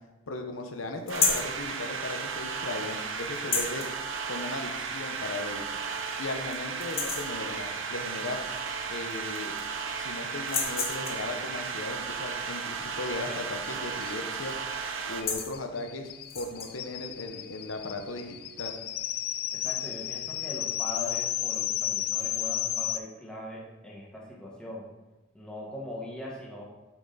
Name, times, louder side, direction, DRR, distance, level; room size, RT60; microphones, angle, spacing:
voice 1, 0.3-3.9 4.3-5.7 6.2-8.4 8.9-9.5 10.0-14.5 15.1-18.7, left 2 dB, 90° left, 4 dB, 0.9 m, -37 dB
sound 1, 1.1-1.5 3.3-3.9 5.2-5.3 5.8-5.9 6.3-6.5 6.8-7.4 8.7-8.8 9.1-9.8 10.4-11.3 13.7-14.0 14.2-14.5 15.0-15.5 16.2-16.7, left 5 dB, 30° left, 1.1 m, -30 dB
sound 2, 1.1-15.2, right 5 dB, 75° right, 0.8 m, -35 dB
sound 3, 13.3-13.4 13.6-13.7 14.0-23.0, left 12 dB, 50° left, 0.4 m, -33 dB
voice 2, 19.5-24.8 25.3-26.6, left 2 dB, 5° left, -5 dB, 1.6 m, -40 dB
7.1 x 6.0 x 4.1 m, 1.1 s
head